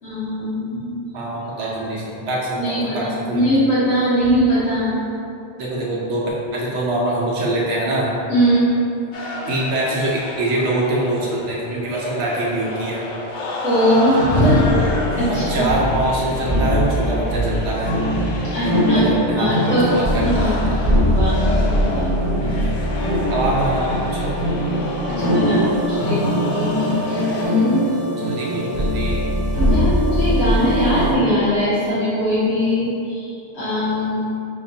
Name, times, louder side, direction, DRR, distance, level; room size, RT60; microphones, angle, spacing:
voice 1, 0.0-1.1 2.6-4.9 8.3-8.7 13.6-14.6 15.1-15.6 18.5-22.5 25.2-27.9 29.6-34.2, equal, 90° left, -14 dB, 1.6 m, -21 dB
voice 2, 1.1-3.5 5.6-8.1 9.5-13.0 15.3-17.9 18.6-20.8 22.4-22.6 23.3-24.4 28.2-29.2, right 1 dB, 80° right, -5 dB, 1.1 m, -24 dB
sound 1, 9.1-27.4, left 1 dB, 60° left, 0.5 m, -31 dB
sound 2, 14.5-31.1, equal, 40° left, 0.9 m, -21 dB
5.0 x 3.0 x 2.7 m, 2.7 s
omnidirectional pair, 1.2 m